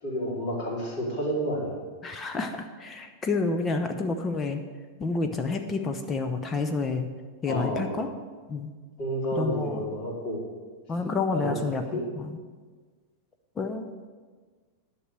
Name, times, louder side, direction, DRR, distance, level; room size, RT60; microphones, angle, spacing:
voice 1, 0.0-1.8 7.5-7.9 9.0-10.4 11.3-11.6 11.9-12.0, equal, 45° left, -4 dB, 3.9 m, -30 dB
voice 2, 2.0-4.6 5.0-7.1 7.4-8.1 8.5-8.7 9.3-9.9 10.9-12.4 13.6-13.9, left 3 dB, 20° left, 6 dB, 0.7 m, -29 dB
11.0 x 6.1 x 6.7 m, 1.5 s
figure-of-eight pair, 90°, 0 cm